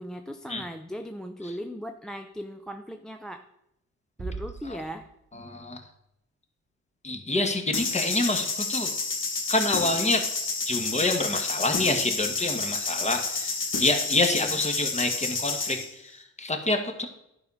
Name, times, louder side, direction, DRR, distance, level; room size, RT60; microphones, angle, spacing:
voice 1, 0.0-3.4 4.2-5.1 14.3-14.6, equal, ahead, 6 dB, 0.5 m, -38 dB
sound 1, 4.2-5.6, right 4 dB, 25° right, 1.2 m, -40 dB
voice 2, 5.3-5.8 7.0-8.9 9.5-10.2 10.7-17.1, left 2 dB, 25° left, 5 dB, 1.4 m, -27 dB
sound 2, 7.7-15.9, left 4 dB, 40° left, 1.8 m, -30 dB
10.5 x 4.9 x 5.5 m, 0.81 s
cardioid pair, 90°, 30 cm